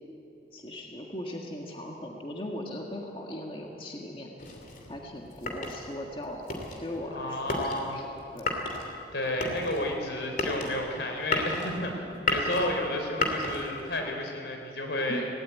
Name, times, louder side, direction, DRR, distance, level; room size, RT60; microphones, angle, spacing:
voice 1, 0.5-4.3 4.9-8.1 8.3-8.6 15.1-15.3, left 1 dB, 30° left, 0 dB, 1.7 m, -39 dB
sound 1, 4.4-14.0, left 2 dB, 50° left, 2.9 m, -33 dB
voice 2, 7.1-8.1 9.1-15.2, left 1 dB, 80° left, 2 dB, 3.9 m, -31 dB
18.0 x 17.5 x 9.4 m, 2.7 s
head